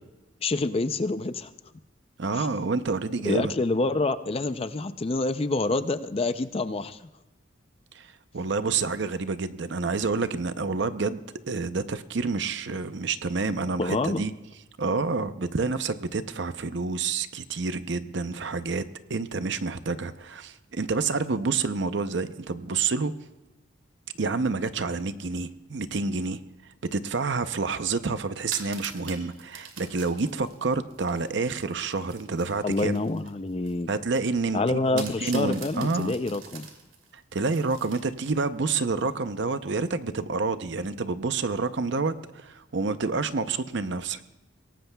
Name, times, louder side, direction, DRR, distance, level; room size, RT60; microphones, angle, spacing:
voice 1, 0.4-1.5 2.4-2.5 3.2-7.0 13.8-14.2 32.6-33.9 34.5-36.7, left 2 dB, 30° left, 11 dB, 0.4 m, -27 dB
voice 2, 2.2-3.5 7.9-11.2 11.5-14.3 14.8-18.8 19.1-23.1 24.2-26.4 26.9-33.0 33.9-36.1 37.3-44.2, right 4 dB, 60° right, 11 dB, 0.6 m, -28 dB
sound 1, 28.3-33.8 34.2-34.3 35.0-38.4, right 6 dB, 75° right, 2.5 m, -44 dB
23.0 x 18.0 x 2.3 m, 1.0 s
head